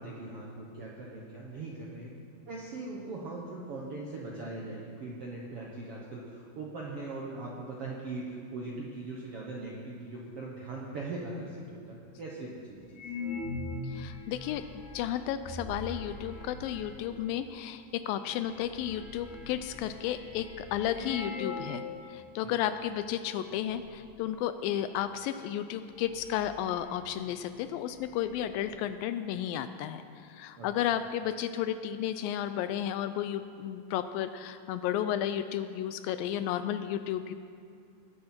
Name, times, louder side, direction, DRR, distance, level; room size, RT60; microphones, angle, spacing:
voice 1, 0.0-2.1 2.5-13.0 22.4-22.5 30.6-30.7, right 2 dB, 70° right, -3 dB, 1.4 m, -40 dB
sound 1, 12.9-17.2 17.9-18.0 18.3-21.8 22.1-22.2 22.9-23.2 23.5-24.0 25.2-25.3 25.7-27.3 27.6-27.7 27.9-28.7, left 3 dB, 60° left, 4.3 m, -42 dB
voice 2, 13.8-37.3, left 10 dB, 80° left, 11 dB, 2.1 m, -33 dB
20.0 x 9.8 x 4.4 m, 2.4 s
omnidirectional pair, 4.4 m